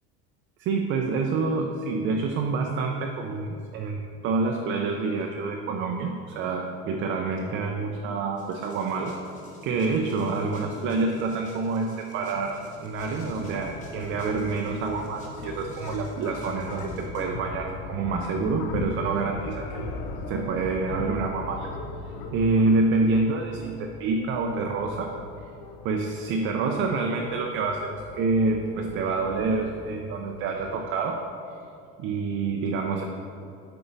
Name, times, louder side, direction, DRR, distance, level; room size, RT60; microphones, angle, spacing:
voice 1, 0.6-9.2 9.6-19.9 20.3-21.7 22.3-25.2 25.8-31.2 32.0-33.0, right 3 dB, 40° right, 2 dB, 0.5 m, -27 dB
sound 1, 8.4-17.2, left 2 dB, 25° left, 1.1 m, -48 dB
sound 2, 12.6-30.7, left 3 dB, 65° left, 0.7 m, -40 dB
7.9 x 4.6 x 4.0 m, 2.5 s
cardioid pair, 150°, 30 cm